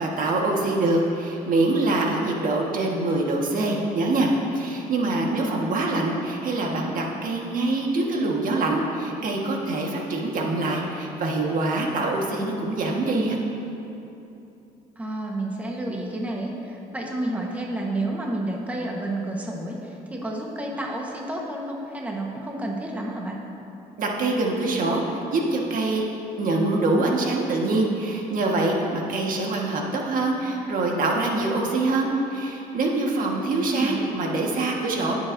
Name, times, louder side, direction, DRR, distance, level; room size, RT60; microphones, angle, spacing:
voice 1, 0.0-13.4 24.0-26.0 26.4-35.2, right 2 dB, 55° right, -1 dB, 1.5 m, -24 dB
voice 2, 5.4-5.8 15.0-23.4 33.7-34.0, right 1 dB, 10° right, -2 dB, 1.2 m, -30 dB
18.5 x 7.6 x 2.7 m, 2.8 s
cardioid pair, 110°, 17 cm